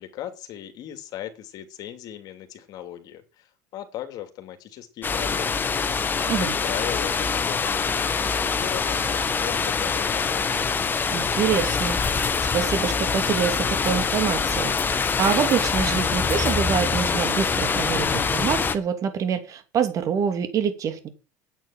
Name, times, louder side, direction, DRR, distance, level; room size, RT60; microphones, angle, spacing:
voice 1, 0.0-6.0 6.4-10.6, left 12 dB, 55° left, 7 dB, 2.8 m, -38 dB
sound 1, 5.0-18.8, left 5 dB, 25° left, 1.7 m, -24 dB
voice 2, 11.1-12.0 12.5-21.1, right 8 dB, 45° right, 9 dB, 2.7 m, -26 dB
9.1 x 8.9 x 8.9 m, 0.32 s
supercardioid pair, 100°, 8 cm